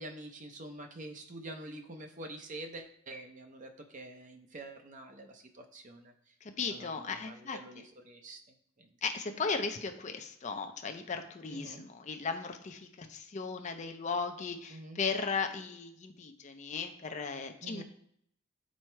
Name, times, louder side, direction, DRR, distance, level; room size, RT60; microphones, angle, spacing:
voice 1, 0.0-6.1 6.7-8.4 8.8-8.9 11.5-11.8 14.7-15.0 17.6-17.8, right 1 dB, 40° right, 4 dB, 0.7 m, -46 dB
voice 2, 6.4-7.6 9.0-17.8, left 5 dB, 35° left, 6 dB, 0.5 m, -36 dB
6.2 x 4.2 x 4.5 m, 0.67 s
head